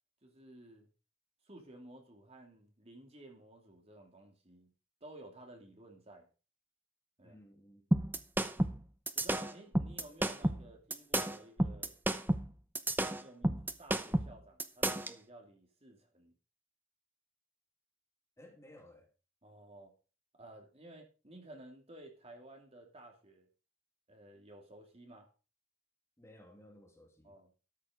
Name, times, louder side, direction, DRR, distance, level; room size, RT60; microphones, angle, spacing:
voice 1, 0.2-0.9 1.4-4.7 5.0-6.3 7.2-7.4 9.1-11.9 13.2-16.3 19.4-19.9 20.3-23.5 24.1-25.3 27.2-27.5, right 1 dB, 30° right, 2.8 m, -55 dB
voice 2, 7.2-7.9 18.4-19.1 26.2-27.4, left 1 dB, 15° left, 2.6 m, -57 dB
sound 1, 7.9-15.1, right 1 dB, 10° right, 0.8 m, -32 dB
13.5 x 7.0 x 5.1 m
head